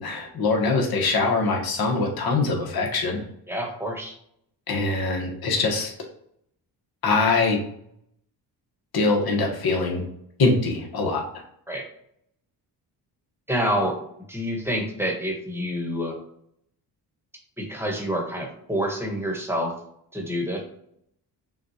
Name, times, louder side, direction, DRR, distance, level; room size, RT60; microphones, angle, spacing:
voice 1, 0.0-3.2 4.7-5.9 7.0-7.6 8.9-10.0 10.4-11.2, left 3 dB, 60° left, 0 dB, 1.3 m, -23 dB
voice 2, 3.5-4.1 11.7-11.9 13.5-14.0 14.3-16.2 17.6-19.7 20.1-20.6, equal, 5° right, 0 dB, 1.2 m, -27 dB
6.0 x 2.4 x 2.9 m, 0.70 s
cardioid pair, 95°, 42 cm